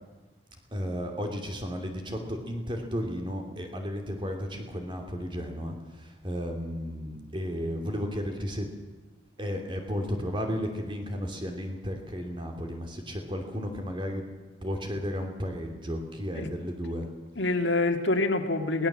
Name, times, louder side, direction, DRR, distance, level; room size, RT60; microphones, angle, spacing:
voice 1, 0.7-5.7 6.2-8.7 9.4-14.2 14.6-17.0, equal, 25° right, 4 dB, 2.7 m, -33 dB
voice 2, 16.9-18.9, left 2 dB, 65° left, 5 dB, 2.0 m, -27 dB
22.0 x 18.0 x 7.5 m, 1.3 s
head